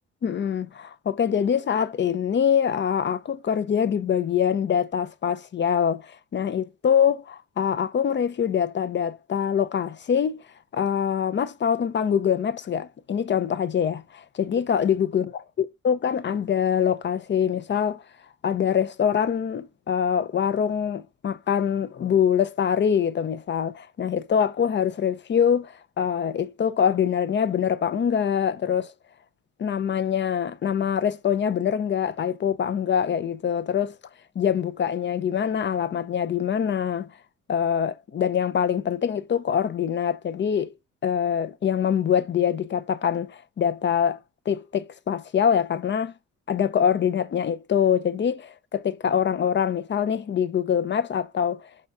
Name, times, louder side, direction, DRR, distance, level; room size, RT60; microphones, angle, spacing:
voice 1, 0.2-10.4 10.7-15.3 15.8-18.0 18.4-28.9 29.6-34.0 34.4-37.1 37.5-40.7 41.0-44.2 44.5-46.1 46.5-51.7, left 8 dB, 40° left, 0.6 m, -24 dB
4.8 x 3.9 x 5.3 m
cardioid pair, 90°, 30 cm